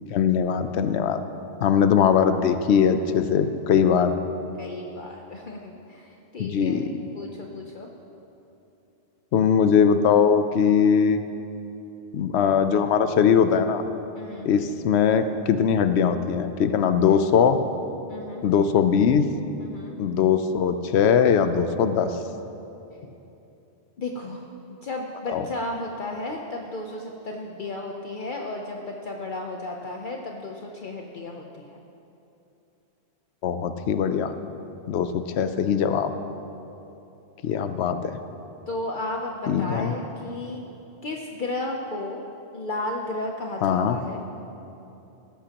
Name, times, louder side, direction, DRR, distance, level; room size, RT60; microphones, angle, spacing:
voice 1, 0.1-1.2 1.6-4.1 6.4-6.8 9.3-11.2 12.1-13.8 14.4-17.6 18.4-19.2 20.0-22.2 25.3-25.5 33.4-34.3 34.9-36.1 37.4-38.2 39.5-39.9 43.6-44.0, left 7 dB, 90° left, 9 dB, 0.9 m, -21 dB
voice 2, 4.6-6.9 7.1-7.9 14.1-14.5 18.1-18.4 19.6-20.0 24.0-24.4 24.7-31.8 38.7-40.6 41.0-42.2 42.5-44.2, left 2 dB, 55° left, 1 dB, 0.9 m, -33 dB
17.5 x 14.0 x 2.9 m, 2.9 s
omnidirectional pair, 1.1 m